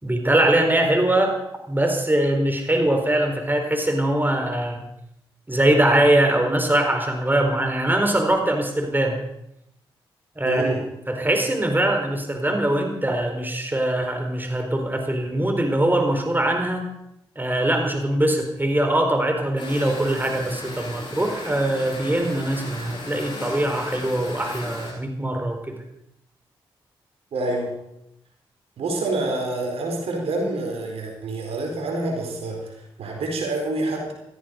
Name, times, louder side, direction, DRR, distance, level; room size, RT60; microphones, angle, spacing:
voice 1, 0.0-1.3 1.7-4.9 5.5-9.2 10.4-10.7 11.1-16.9 17.4-25.7, right 1 dB, 20° right, 4 dB, 4.3 m, -22 dB
voice 2, 10.4-10.8 27.3-27.7 28.8-34.1, right 2 dB, 75° right, 1 dB, 4.3 m, -27 dB
sound 1, 19.6-24.9, left 2 dB, 50° left, 7.7 m, -36 dB
16.5 x 14.5 x 5.4 m, 0.81 s
supercardioid pair, 40°, 10 cm